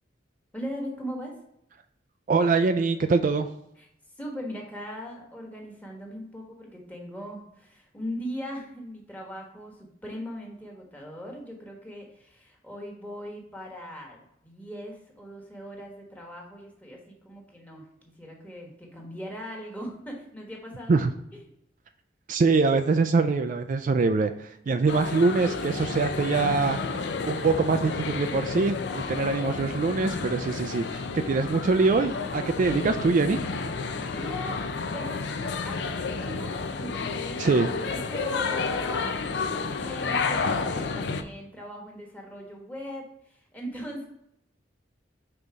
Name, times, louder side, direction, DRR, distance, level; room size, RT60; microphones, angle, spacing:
voice 1, 0.5-1.3 3.8-3.9 4.2-17.9 18.2-21.0 21.3-21.4 34.0-35.2 35.6-37.4 37.7-44.1, equal, 10° left, -1 dB, 1.3 m, -39 dB
voice 2, 2.3-3.5 20.9-21.1 22.3-33.4 37.4-37.7, right 4 dB, 45° right, 8 dB, 0.3 m, -24 dB
sound 1, 24.9-41.2, left 4 dB, 65° left, 0.5 m, -31 dB
5.5 x 3.9 x 4.7 m, 0.76 s
head